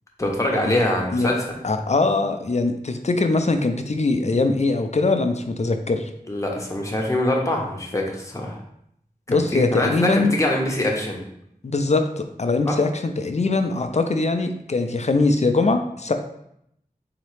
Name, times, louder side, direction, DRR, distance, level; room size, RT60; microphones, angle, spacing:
voice 1, 0.2-1.4 6.3-8.6 9.3-11.2 12.7-12.8, left 1 dB, 20° left, -1 dB, 0.8 m, -24 dB
voice 2, 1.6-6.1 9.3-10.4 11.7-16.1, left 3 dB, 45° left, 7 dB, 0.4 m, -22 dB
4.1 x 2.8 x 3.2 m, 0.74 s
wide cardioid pair, 60°, 15 cm